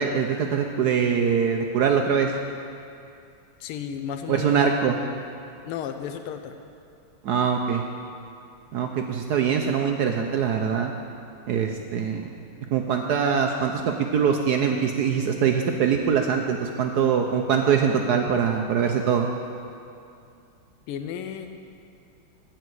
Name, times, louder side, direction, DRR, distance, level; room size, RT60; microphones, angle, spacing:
voice 1, 0.0-2.3 4.3-5.0 7.2-7.8 8.7-10.9 11.5-12.3 12.7-19.3, right 7 dB, 70° right, 3 dB, 0.9 m, -23 dB
voice 2, 3.6-4.7 5.6-6.6 20.9-21.5, left 8 dB, 85° left, 7 dB, 1.6 m, -33 dB
14.5 x 5.0 x 8.0 m, 2.6 s
omnidirectional pair, 2.3 m